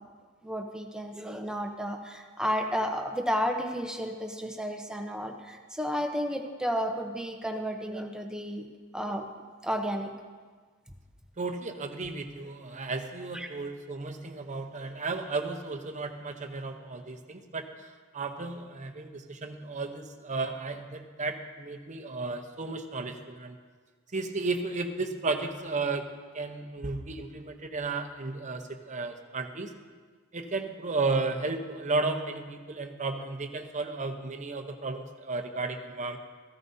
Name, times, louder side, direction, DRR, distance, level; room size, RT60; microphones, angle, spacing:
voice 1, 0.4-8.7 8.9-9.3 9.6-10.1 12.7-12.9 13.3-13.5, equal, 5° right, 3 dB, 0.8 m, -32 dB
voice 2, 11.4-23.6 24.1-26.1 26.3-29.7 30.3-36.2, right 3 dB, 35° right, 5 dB, 0.8 m, -34 dB
15.0 x 12.5 x 2.7 m, 1.5 s
head